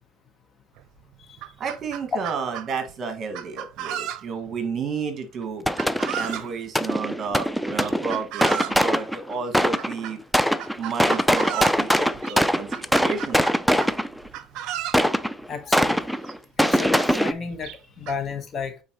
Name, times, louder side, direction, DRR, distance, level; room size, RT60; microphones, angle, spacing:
Chicken rooster, 0.8-0.9 1.2-2.7 3.3-4.5 5.8-6.5 7.8-8.9 9.8-10.2 10.6-11.8 12.2-12.4 12.7-14.0 14.3-15.0 16.0-16.1 16.3-16.4 17.0-17.1 17.6-18.2, right 11 dB, 65° right, 0.6 m, -33 dB
voice 1, 1.6-5.7 6.2-10.2 10.8-13.4, right 5 dB, 40° right, 1.8 m, -31 dB
sound 1, 5.7-6.4 6.8-10.0 10.3-14.3 14.9-17.3, equal, ahead, 0.4 m, -22 dB
voice 2, 15.5-16.0 16.6-17.7 18.0-18.7, left 5 dB, 40° left, 1.2 m, -32 dB
8.6 x 4.2 x 3.0 m
supercardioid pair, 105°, 0 cm